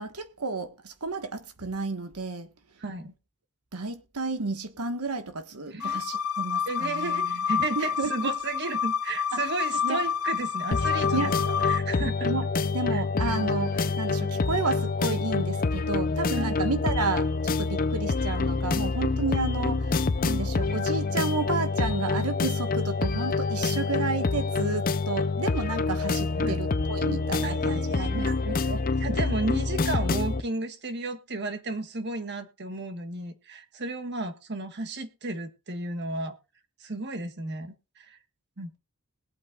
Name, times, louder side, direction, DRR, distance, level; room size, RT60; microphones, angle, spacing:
voice 1, 0.0-2.5 3.7-7.4 7.7-8.3 9.3-9.4 9.8-10.0 11.1-11.4 12.2-12.5 12.7-28.8, right 3 dB, 90° right, 1.5 m, -32 dB
voice 2, 2.8-3.1 5.7-6.0 6.7-12.3 12.9-13.0 16.3-16.6 26.3-26.6 27.3-28.3 29.0-36.3 36.8-38.2 38.6-38.8, right 2 dB, 50° right, 1.4 m, -33 dB
sound 1, 5.8-11.8, left 7 dB, 80° left, 1.1 m, -29 dB
sound 2, 7.9-8.0 8.7-8.8 9.7-11.2 13.1-14.5 15.1-15.9 16.4-16.5 16.8-17.8 18.1-18.7, right 1 dB, 15° right, 3.8 m, -53 dB
sound 3, 10.7-30.4, left 3 dB, 40° left, 0.5 m, -27 dB
20.5 x 8.4 x 2.4 m
head